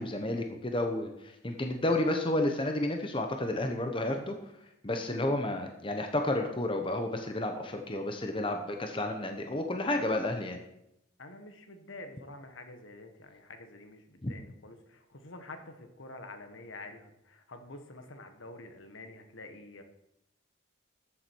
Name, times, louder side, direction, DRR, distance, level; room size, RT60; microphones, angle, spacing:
voice 1, 0.0-4.3 4.8-10.6 14.2-14.3, left 1 dB, 25° left, 4 dB, 0.9 m, -31 dB
voice 2, 11.2-19.8, left 2 dB, 70° left, 7 dB, 1.3 m, -48 dB
13.0 x 7.4 x 4.6 m, 0.83 s
head